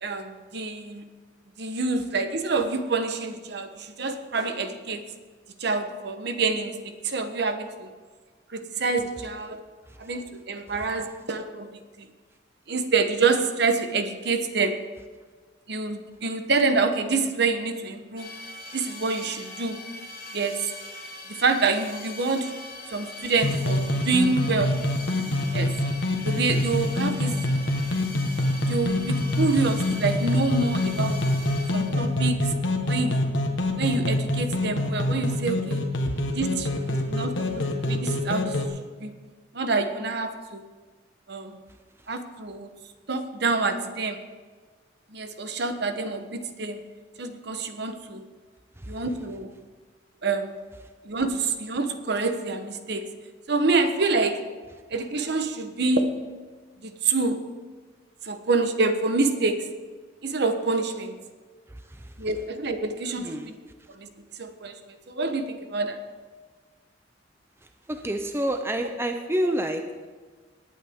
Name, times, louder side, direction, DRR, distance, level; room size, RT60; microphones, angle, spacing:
voice 1, 0.0-1.1 1.6-5.0 5.6-6.8 7.0-7.9 8.5-9.6 10.0-11.7 12.0-12.1 12.7-14.8 15.7-18.3 18.7-19.8 20.3-20.7 21.3-22.5 22.9-24.7 25.5-25.7 26.2-27.4 28.6-31.2 31.7-32.5 32.9-33.3 33.8-35.8 36.3-38.6 39.0-39.1 39.5-40.6 41.3-41.6 42.1-42.7 43.1-44.2 45.1-46.8 47.2-48.2 48.9-49.5 50.2-50.5 51.0-53.1 53.5-54.4 54.9-56.1 56.8-57.4 58.2-59.6 60.2-61.2 62.2-63.5 63.9-64.1 64.4-66.0, right 3 dB, 60° right, 8 dB, 1.1 m, -27 dB
sound 1, 18.2-32.3, left 2 dB, 50° left, 3.0 m, -41 dB
sound 2, 23.4-38.7, left 1 dB, 80° left, 1.3 m, -26 dB
voice 2, 61.7-62.1 63.2-63.5 67.9-70.1, right 1 dB, 15° right, 6 dB, 0.6 m, -29 dB
19.0 x 9.0 x 3.6 m, 1.4 s
head